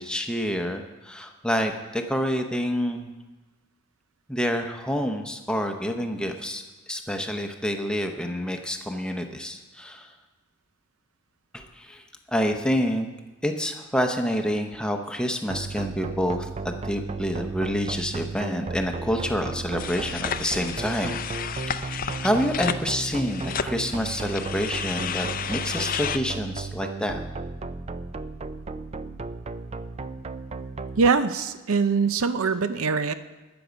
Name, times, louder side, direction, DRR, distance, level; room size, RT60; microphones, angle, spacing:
voice 1, 0.0-3.1 4.3-6.6 6.9-10.1 11.5-13.1 13.4-21.2 21.5-27.2, equal, 5° left, 4 dB, 0.8 m, -28 dB
sound 1, 15.5-31.1, right 3 dB, 30° right, 0.4 m, -34 dB
sound 2, 19.8-26.2, left 8 dB, 40° left, 0.4 m, -32 dB
voice 2, 31.0-33.1, right 5 dB, 80° right, 11 dB, 0.6 m, -23 dB
20.0 x 7.0 x 5.1 m, 1.2 s
head